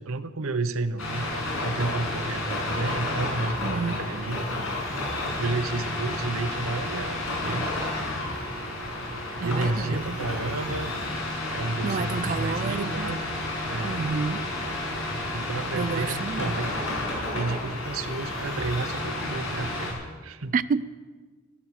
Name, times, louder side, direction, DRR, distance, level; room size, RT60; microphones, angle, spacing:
voice 1, 0.0-4.5 5.3-7.7 8.9-10.9 11.5-13.2 13.7-14.1 15.3-16.7 17.3-20.5, right 3 dB, 85° right, 0.9 m, -31 dB
sound 1, 1.0-19.9, left 2 dB, 85° left, 6.5 m, -31 dB
voice 2, 3.6-4.0 9.4-10.2 11.8-13.2 13.8-14.4 15.7-16.6 20.5-20.8, right 5 dB, 40° right, 0.3 m, -29 dB
13.0 x 12.5 x 7.6 m
head